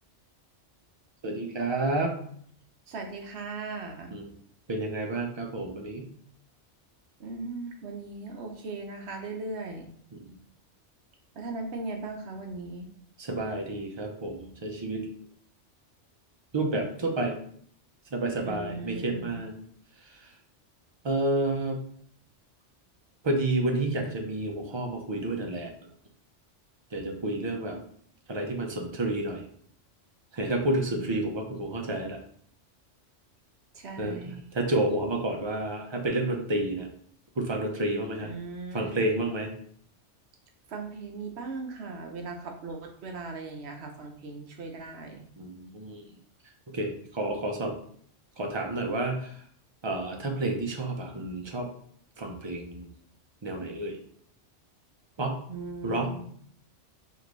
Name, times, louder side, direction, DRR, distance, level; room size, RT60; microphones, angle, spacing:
voice 1, 1.2-2.1 4.1-4.3 4.7-6.1 10.1-10.3 13.2-15.1 16.5-17.4 18.1-19.6 21.0-21.8 23.2-25.7 26.9-27.8 28.3-29.4 30.3-32.2 34.0-36.9 37.4-38.3 38.7-39.5 45.4-46.0 46.7-47.7 48.4-49.3 49.8-51.7 52.2-52.9 53.4-54.0 55.2-55.4 55.8-56.1, right 2 dB, 35° right, 2 dB, 0.5 m, -30 dB
voice 2, 2.9-4.2 7.2-9.9 11.3-12.9 18.4-19.4 33.7-34.5 38.2-39.3 40.7-45.3 55.5-56.3, right 3 dB, 65° right, 3 dB, 0.9 m, -38 dB
5.1 x 2.6 x 3.1 m, 0.62 s
omnidirectional pair, 1.2 m